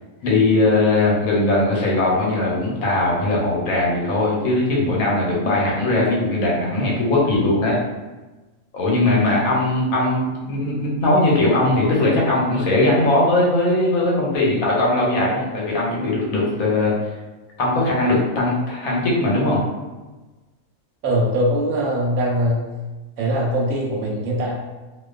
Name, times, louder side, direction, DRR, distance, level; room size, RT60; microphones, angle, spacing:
voice 1, 0.2-7.8 8.7-16.9 17.6-19.6, left 2 dB, 75° left, -4 dB, 1.1 m, -19 dB
voice 2, 21.0-22.7 23.2-24.5, equal, 80° right, -2 dB, 1.1 m, -21 dB
2.5 x 2.2 x 2.3 m, 1.2 s
omnidirectional pair, 1.5 m